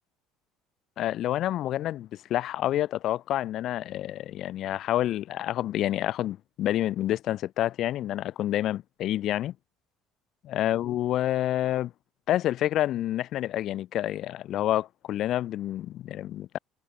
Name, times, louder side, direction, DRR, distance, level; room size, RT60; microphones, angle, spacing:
voice 1, 1.0-9.5 10.4-11.9 12.3-16.6, left 13 dB, 55° left, 6.1 m, -28 dB
supercardioid pair, 110°, 0 cm